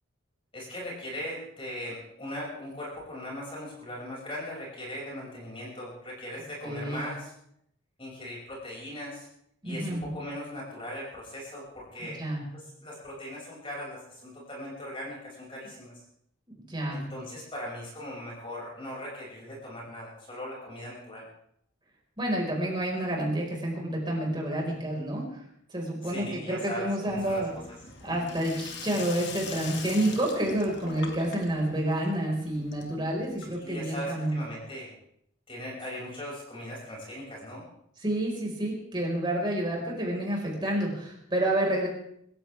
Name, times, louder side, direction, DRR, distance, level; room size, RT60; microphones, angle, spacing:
voice 1, 0.5-7.3 8.0-9.3 9.6-12.2 12.8-16.0 16.9-21.2 26.0-27.4 33.5-34.9 35.5-37.6, equal, 25° left, -4 dB, 6.7 m, -39 dB
voice 2, 6.6-7.1 9.6-10.1 12.0-12.4 16.5-17.0 22.2-25.2 25.7-27.5 28.0-34.4 38.0-41.9, right 1 dB, 25° right, -2 dB, 5.3 m, -29 dB
Sink (filling or washing), 27.1-33.9, left 5 dB, 60° left, 2.3 m, -42 dB
25.5 x 14.5 x 3.6 m, 0.72 s
head